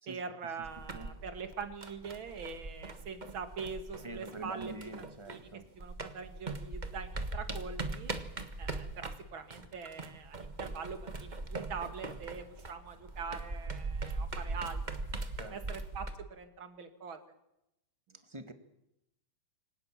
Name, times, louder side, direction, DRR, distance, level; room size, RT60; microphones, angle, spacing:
voice 1, 0.1-4.7 5.3-5.5 5.8-8.1 8.6-14.8 15.5-17.2, right 5 dB, 45° right, 8 dB, 2.7 m, -43 dB
sound 1, 0.6-5.5 5.8-16.1, right 3 dB, 60° right, 0.4 m, -40 dB
voice 2, 4.0-5.7 15.3-15.6 18.2-18.5, right 2 dB, 15° right, 8 dB, 0.9 m, -45 dB
25.5 x 18.0 x 7.5 m, 0.85 s
omnidirectional pair, 3.5 m